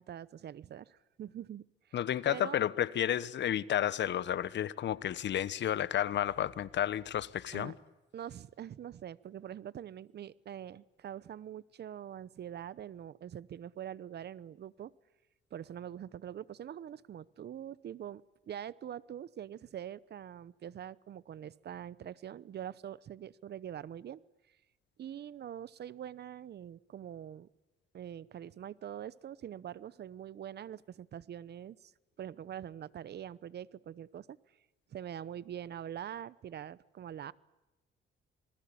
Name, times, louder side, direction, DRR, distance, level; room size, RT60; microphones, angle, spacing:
voice 1, 0.0-2.0 2.3-2.6 7.5-7.7 8.1-14.9 15.5-24.2 25.0-27.5 27.9-31.9 32.2-34.4 34.9-37.3, right 10 dB, 55° right, 0.9 m, -44 dB
voice 2, 1.9-7.7, left 11 dB, 65° left, 1.1 m, -31 dB
27.5 x 20.0 x 8.6 m
cardioid pair, 90°, 20 cm